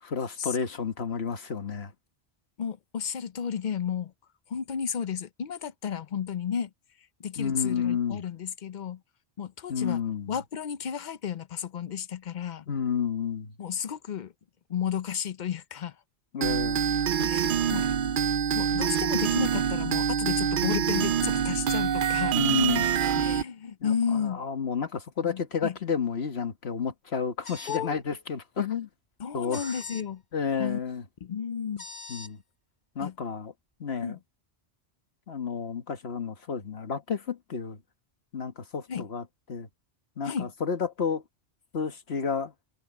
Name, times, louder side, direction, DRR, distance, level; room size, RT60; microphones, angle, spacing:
voice 1, 0.0-1.9 7.4-8.2 9.7-10.3 12.7-13.5 16.3-16.9 17.2-17.5 22.3-22.9 23.1-23.2 23.8-28.9 29.3-29.7 30.3-31.0 32.1-32.4 32.9-33.5 33.8-34.2 35.3-37.8 38.3-39.2 39.5-39.7 40.2-41.2 41.7-42.5, left 6 dB, 70° left, 1.7 m, -31 dB
voice 2, 2.6-4.1 4.5-6.7 7.2-9.0 9.4-10.0 10.3-12.7 13.6-14.3 14.7-16.0 17.2-17.9 18.5-22.4 23.2-24.4 25.2-25.8 27.7-28.0 29.2-30.2 30.6-30.8 31.2-31.8 33.0-33.1 34.0-34.2 38.9-39.1 40.2-40.5, left 7 dB, 50° left, 0.7 m, -32 dB
sound 1, 16.4-23.4, right 8 dB, 60° right, 0.7 m, -26 dB
sound 2, 27.4-27.9 29.5-30.1 31.8-32.3, left 3 dB, 25° left, 2.5 m, -42 dB
omnidirectional pair, 1.1 m